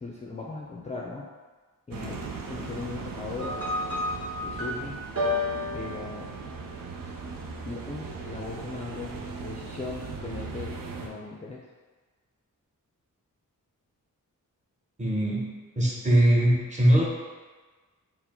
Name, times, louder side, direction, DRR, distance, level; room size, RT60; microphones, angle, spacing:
voice 1, 0.0-1.3 1.9-2.2 2.4-3.6 4.4-5.0 5.7-6.3 7.6-11.6, left 3 dB, 20° left, -4 dB, 0.4 m, -38 dB
sound 1, 1.9-11.1, right 4 dB, 75° right, 0.6 m, -38 dB
sound 2, 3.4-6.8, left 2 dB, 45° right, 0.9 m, -31 dB
voice 2, 15.0-17.1, right 1 dB, 20° right, -5 dB, 0.9 m, -22 dB
4.6 x 2.0 x 3.7 m, 1.3 s
wide cardioid pair, 95°, 34 cm